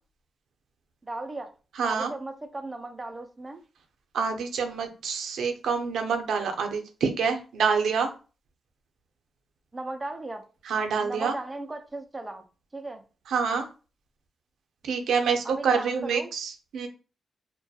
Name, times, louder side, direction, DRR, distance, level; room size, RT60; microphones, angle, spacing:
voice 1, 1.0-1.5 1.8-3.6 9.7-10.5 11.0-12.4 12.7-13.0 15.4-16.3, right 2 dB, 20° right, 0.3 m, -36 dB
voice 2, 1.8-2.1 4.1-8.1 10.6-11.3 13.3-13.7 14.8-16.9, right 5 dB, 90° right, 0.5 m, -27 dB
2.3 x 2.1 x 2.6 m
cardioid pair, 105°, 0 cm